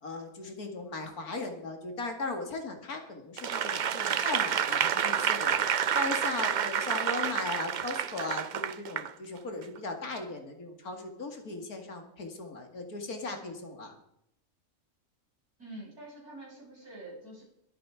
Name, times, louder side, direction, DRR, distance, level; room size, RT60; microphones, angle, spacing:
voice 1, 0.0-13.9, left 3 dB, 80° left, 4 dB, 2.7 m, -37 dB
Applause / Crowd, 3.4-9.1 9.6-9.8, right 8 dB, 65° right, 0.4 m, -29 dB
voice 2, 15.6-17.4, right 1 dB, 85° right, -4 dB, 8.2 m, -46 dB
21.0 x 9.3 x 4.9 m, 0.79 s
omnidirectional pair, 1.6 m